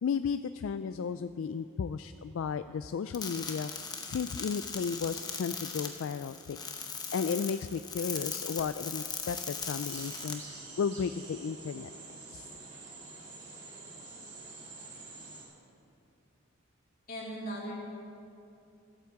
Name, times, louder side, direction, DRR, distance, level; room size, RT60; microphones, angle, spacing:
voice 1, 0.0-3.7 4.1-6.6 7.1-10.4 10.8-11.9 12.3-12.5, left 6 dB, 65° left, 12 dB, 0.3 m, -34 dB
sound 1, 3.1-10.3, left 5 dB, 20° left, 1.0 m, -39 dB
sound 2, 9.8-15.4, right 3 dB, 35° right, 3.1 m, -47 dB
voice 2, 17.1-17.8, equal, 45° left, -4 dB, 3.2 m, -38 dB
14.0 x 9.3 x 7.4 m, 2.7 s
head